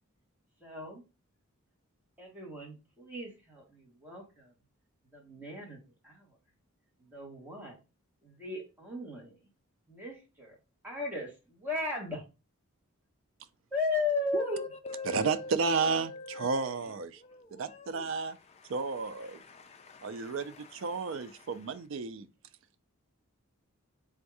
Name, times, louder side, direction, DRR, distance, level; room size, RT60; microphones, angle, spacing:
voice 1, 0.6-1.0 2.2-4.5 5.1-6.4 7.0-7.8 8.2-9.4 9.9-10.6 10.8-12.3 13.7-14.6 19.2-19.4, left 2 dB, 10° right, 1.3 m, -36 dB
voice 2, 14.3-21.8, left 3 dB, 30° left, 0.3 m, -45 dB
voice 3, 15.1-17.1 17.5-18.4 18.7-19.4 20.0-22.3, right 4 dB, 60° right, 0.4 m, -32 dB
3.6 x 2.6 x 4.6 m
head